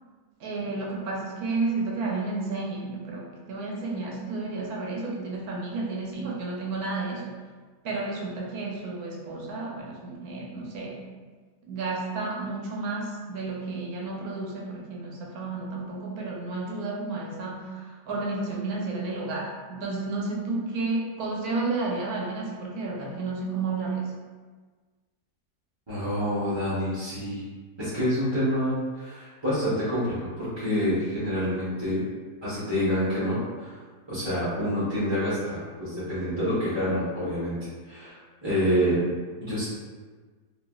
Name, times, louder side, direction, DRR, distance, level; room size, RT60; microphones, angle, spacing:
voice 1, 0.4-7.3 7.8-11.0 11.7-24.1, right 3 dB, 75° right, -2 dB, 1.0 m, -31 dB
voice 2, 25.9-27.4 27.8-32.0 32.4-33.8 34.1-37.6 37.8-39.0 39.4-39.6, equal, 35° right, -12 dB, 0.4 m, -27 dB
3.1 x 2.4 x 2.2 m, 1.4 s
omnidirectional pair, 1.7 m